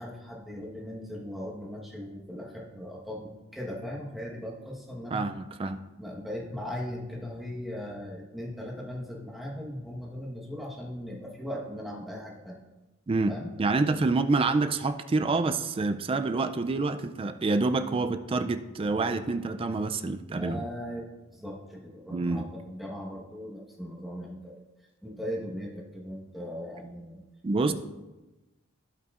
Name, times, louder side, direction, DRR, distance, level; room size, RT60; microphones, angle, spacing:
voice 1, 0.0-5.3 6.0-12.6 13.3-13.5 18.3-18.5 18.8-19.1 20.4-24.6 25.0-27.2 27.7-27.8, equal, ahead, -3 dB, 1.2 m, -38 dB
voice 2, 5.1-5.8 13.1-20.6 22.1-22.4 27.4-27.7, right 3 dB, 25° right, 9 dB, 0.3 m, -27 dB
16.0 x 5.5 x 2.5 m, 1.1 s
head